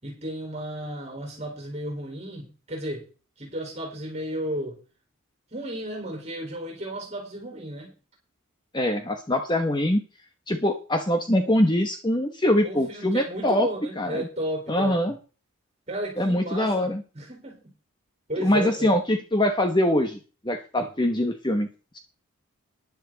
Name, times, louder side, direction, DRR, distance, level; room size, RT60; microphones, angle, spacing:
voice 1, 0.0-3.1 3.4-4.8 5.5-7.9 12.6-15.0 15.9-17.6 18.3-19.0 20.8-20.9, right 1 dB, 30° right, 1 dB, 4.4 m, -33 dB
voice 2, 8.7-10.0 10.5-13.7 14.0-14.3 14.7-15.1 16.2-17.0 18.4-20.2 20.4-21.7, left 1 dB, 20° left, 6 dB, 1.1 m, -23 dB
12.0 x 11.0 x 4.0 m, 0.34 s
head